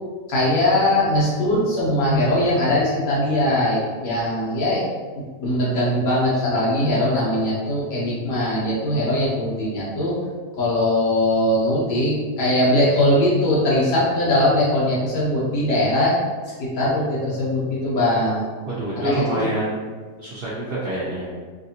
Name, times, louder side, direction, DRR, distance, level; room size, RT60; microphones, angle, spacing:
voice 1, 0.3-4.8 5.1-10.2 10.6-16.1 16.7-18.4 19.0-19.4, left 1 dB, 90° left, -6 dB, 1.6 m, -20 dB
voice 2, 18.6-19.8 20.2-21.3, right 1 dB, 70° right, -8 dB, 0.5 m, -26 dB
3.2 x 2.5 x 2.8 m, 1.5 s
omnidirectional pair, 1.8 m